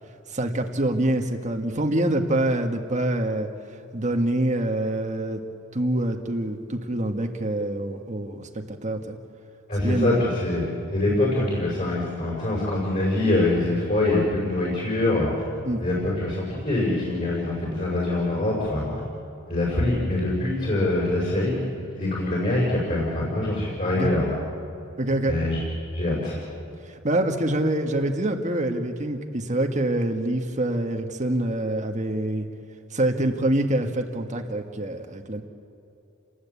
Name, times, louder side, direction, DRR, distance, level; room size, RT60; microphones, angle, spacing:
voice 1, 0.3-3.5 3.9-5.4 5.7-9.2 9.8-10.2 15.6-15.8 23.9-24.1 25.0-25.3 26.9-32.5 32.9-35.4, right 1 dB, 35° right, 4 dB, 1.5 m, -25 dB
voice 2, 9.7-15.4 15.8-18.9 19.5-21.7 21.9-24.4 25.3-25.6 25.9-26.4, left 2 dB, 35° left, -4 dB, 5.8 m, -24 dB
29.0 x 19.5 x 8.4 m, 2.9 s
head